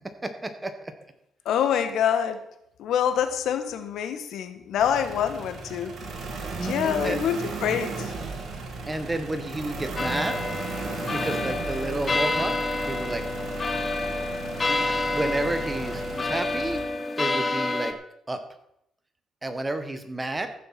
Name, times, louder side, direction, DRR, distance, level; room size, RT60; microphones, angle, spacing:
voice 1, 0.2-0.9 6.6-7.2 8.9-10.4 10.7-12.5 12.9-13.2 14.7-17.9 18.3-18.4 19.4-20.5, right 2 dB, 20° right, 8 dB, 1.8 m, -31 dB
voice 2, 1.4-2.4 2.8-5.9 6.6-8.1, left 8 dB, 80° left, 9 dB, 1.6 m, -26 dB
sound 1, 4.8-16.8, right 3 dB, 65° right, 3.1 m, -35 dB
sound 2, 10.0-17.9, left 2 dB, 30° left, 1.1 m, -28 dB
15.0 x 7.0 x 6.0 m, 0.77 s
cardioid pair, 90°, 0 cm